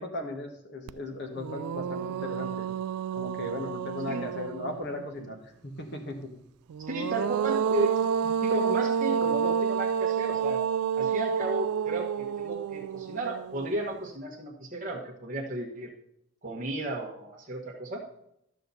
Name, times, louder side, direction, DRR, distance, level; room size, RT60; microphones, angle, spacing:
voice 1, 0.0-2.7 3.1-5.4 5.6-6.2, left 2 dB, 50° left, 3 dB, 1.4 m, -37 dB
sound 1, 0.9-1.0 1.4-5.0 6.7-14.0, right 7 dB, 85° right, 0.3 m, -29 dB
voice 2, 6.9-7.9 8.2-10.6 11.0-15.9 16.4-18.0, right 2 dB, 35° right, -3 dB, 1.1 m, -33 dB
12.0 x 6.9 x 4.0 m, 0.77 s
head